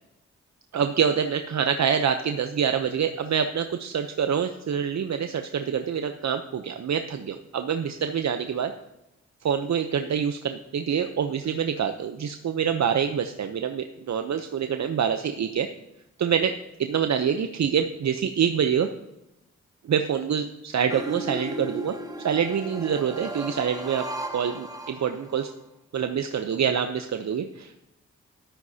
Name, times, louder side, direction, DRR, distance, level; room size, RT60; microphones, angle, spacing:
voice 1, 0.7-8.7 9.4-15.7 16.2-16.5 16.8-18.9 19.8-22.0 22.2-25.5 25.9-27.8, right 7 dB, 60° right, 7 dB, 0.8 m, -26 dB
sound 1, 20.9-25.5, right 1 dB, 10° right, 1.8 m, -35 dB
13.5 x 13.0 x 2.8 m, 0.90 s
supercardioid pair, 40°, 31 cm